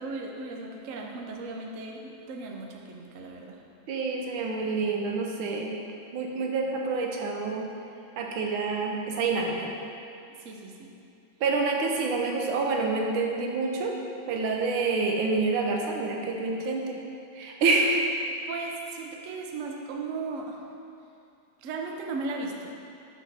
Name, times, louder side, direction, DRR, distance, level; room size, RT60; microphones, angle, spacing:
voice 1, 0.0-3.6 10.4-10.9 18.5-20.6 21.6-22.7, right 3 dB, 65° right, 1 dB, 0.7 m, -36 dB
voice 2, 3.9-5.7 6.1-7.7 8.2-9.7 11.4-13.9 14.3-16.9 17.4-18.1, right 3 dB, 90° right, 1 dB, 1.6 m, -27 dB
7.4 x 3.6 x 5.4 m, 2.6 s
omnidirectional pair, 2.2 m